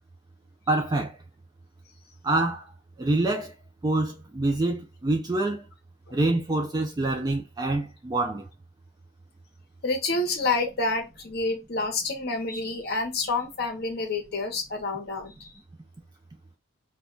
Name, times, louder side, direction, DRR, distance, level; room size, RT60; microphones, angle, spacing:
voice 1, 0.7-1.2 2.2-2.7 3.0-3.5 3.8-5.6 6.1-8.4, right 2 dB, 20° right, 0.3 m, -26 dB
voice 2, 9.8-15.5, left 3 dB, 55° left, 0.7 m, -28 dB
2.2 x 2.2 x 3.7 m
head